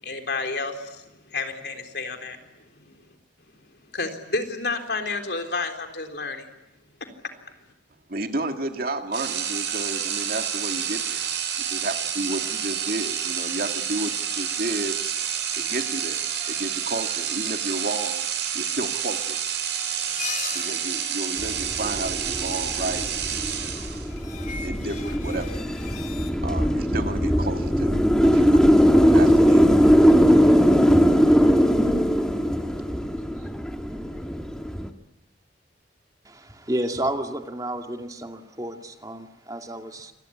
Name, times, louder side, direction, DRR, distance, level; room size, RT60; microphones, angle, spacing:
voice 1, 0.0-2.4 2.8-3.0 3.9-6.5 7.2-7.3, left 3 dB, 65° left, 5 dB, 3.8 m, -30 dB
voice 2, 8.1-11.3 11.6-15.0 15.2-18.2 18.5-19.4 20.5-23.1 24.6-25.6 26.4-29.7, right 2 dB, 55° right, 5 dB, 2.3 m, -32 dB
sound 1, 9.1-24.2, right 8 dB, 80° right, 5.7 m, -29 dB
sound 2, 19.9-21.9 24.1-26.3, left 7 dB, 45° left, 3.0 m, -38 dB
sound 3, 21.4-34.9, equal, 5° left, 1.8 m, -20 dB
voice 3, 36.2-40.1, right 1 dB, 20° right, 5 dB, 2.3 m, -31 dB
27.5 x 22.0 x 9.9 m, 0.92 s
head